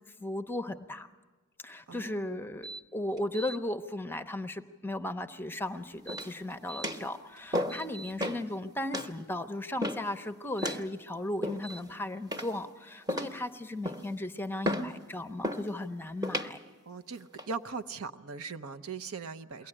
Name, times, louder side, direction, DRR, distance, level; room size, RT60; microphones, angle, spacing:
voice 1, 0.2-1.1 1.6-16.6, left 1 dB, 10° left, 9 dB, 0.7 m, -36 dB
voice 2, 1.9-2.4 16.9-19.7, right 5 dB, 75° right, 9 dB, 0.7 m, -40 dB
sound 1, 2.6-2.8 3.2-3.6 5.9-6.9 7.4-8.1 10.4-10.8 11.6-11.8, right 3 dB, 45° right, 1.1 m, -44 dB
sound 2, 6.1-6.4 6.8-7.1 7.5-7.9 8.2-8.4 8.9-9.1 9.8-10.1 10.6-10.9 11.4-11.8 12.3-12.7 13.1-13.4 13.8-14.1 14.6-14.9 15.4-15.7 16.2-16.5 17.1-17.5, equal, 20° right, 1.0 m, -33 dB
22.5 x 17.0 x 9.9 m, 1.3 s
head